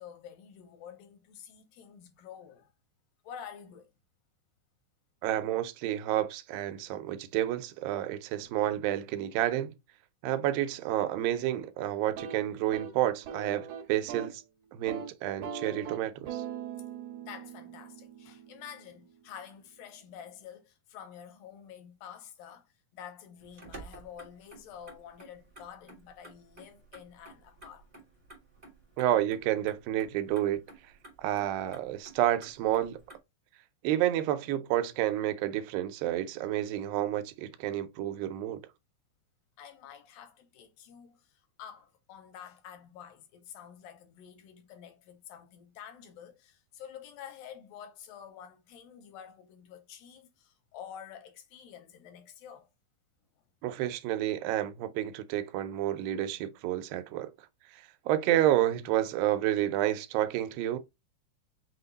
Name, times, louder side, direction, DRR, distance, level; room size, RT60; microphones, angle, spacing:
voice 1, 0.0-2.7 3.2-3.9 8.3-8.5 17.2-28.0 39.6-52.7, left 8 dB, 80° left, 2.6 m, -49 dB
voice 2, 5.2-9.7 10.2-14.4 14.7-16.4 29.0-30.6 31.2-33.0 33.8-38.6 53.6-57.3 57.7-60.8, right 13 dB, 85° right, 2.4 m, -30 dB
sound 1, 12.0-14.4 14.7-15.1 15.4-19.3, right 8 dB, 65° right, 2.3 m, -42 dB
Motor vehicle (road), 23.4-33.2, right 2 dB, 40° right, 0.6 m, -53 dB
5.9 x 2.1 x 3.9 m
omnidirectional pair, 4.0 m